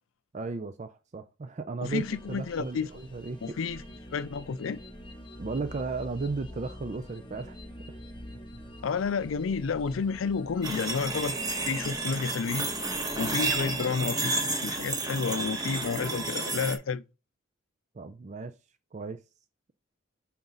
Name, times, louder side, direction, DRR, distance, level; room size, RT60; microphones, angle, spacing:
voice 1, 0.3-3.6 5.4-7.6 7.9-8.0 13.4-13.5 17.9-18.6 18.9-19.2, right 4 dB, 35° right, 0.4 m, -35 dB
voice 2, 1.8-2.9 3.4-3.8 4.1-4.8 8.8-11.4 11.6-12.7 13.2-17.0, left 5 dB, 80° left, 0.4 m, -30 dB
sound 1, 1.8-13.8, left 1 dB, 25° left, 1.0 m, -46 dB
sound 2, 10.6-16.8, right 3 dB, 20° right, 0.9 m, -31 dB
5.8 x 3.9 x 5.6 m
head